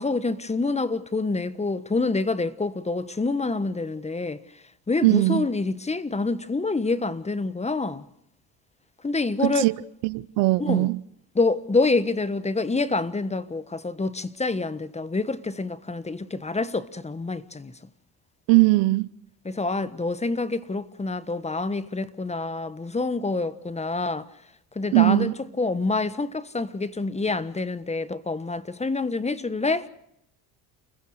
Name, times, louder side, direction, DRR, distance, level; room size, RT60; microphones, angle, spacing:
voice 1, 0.0-4.4 4.9-8.0 9.0-9.7 10.6-10.9 11.3-17.7 19.4-24.3 24.7-29.9, left 3 dB, 15° left, 1.3 m, -27 dB
voice 2, 5.0-5.4 9.4-9.7 10.0-11.0 18.5-19.1 24.9-25.3, right 23 dB, 80° right, 0.8 m, -20 dB
29.0 x 16.0 x 6.5 m
supercardioid pair, 90°, 40 cm